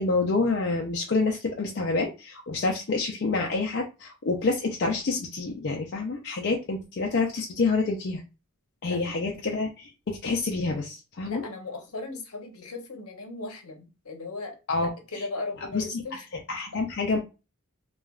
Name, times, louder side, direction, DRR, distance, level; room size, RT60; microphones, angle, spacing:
voice 1, 0.0-8.2 8.8-11.5 14.7-14.9 15.7-15.8 16.5-17.2, left 3 dB, 50° left, 0 dB, 0.4 m, -27 dB
voice 2, 11.2-16.3 16.7-16.8, left 3 dB, 75° left, 4 dB, 0.8 m, -37 dB
3.3 x 2.3 x 2.3 m, 0.29 s
head